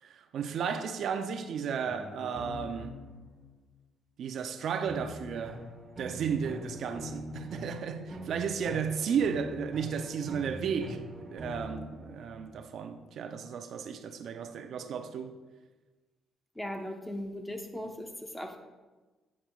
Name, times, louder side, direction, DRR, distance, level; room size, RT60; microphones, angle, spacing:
voice 1, 0.0-3.0 4.2-5.7 6.0-15.4, right 6 dB, 70° right, 0.5 m, -34 dB
sound 1, 1.9-3.5 4.9-12.6, equal, 20° right, 1.4 m, -44 dB
voice 2, 16.6-18.6, left 1 dB, 10° left, 0.8 m, -38 dB
8.5 x 7.6 x 2.3 m
cardioid pair, 90°, 0 cm